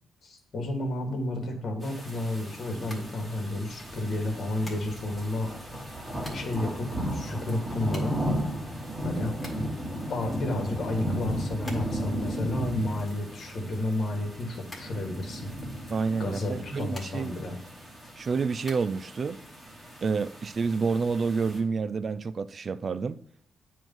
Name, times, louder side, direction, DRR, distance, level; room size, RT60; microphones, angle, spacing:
voice 1, 0.2-5.5 6.3-8.2 9.0-9.6 10.1-15.5 16.2-17.5, left 1 dB, 50° left, 1.6 m, -31 dB
sound 1, 1.8-21.6, equal, 10° right, 1.6 m, -36 dB
sound 2, 2.9-3.8 4.6-5.2 5.9-6.7 7.0-7.1 7.3-9.9 10.3-12.2 12.5-14.3 14.6-15.6 16.4-17.5 17.8-18.8, left 1 dB, 20° left, 1.7 m, -47 dB
voice 2, 15.9-17.3 18.2-19.4 20.0-23.2, right 5 dB, 40° right, 0.4 m, -29 dB
9.0 x 3.2 x 5.3 m
cardioid pair, 135°, 0 cm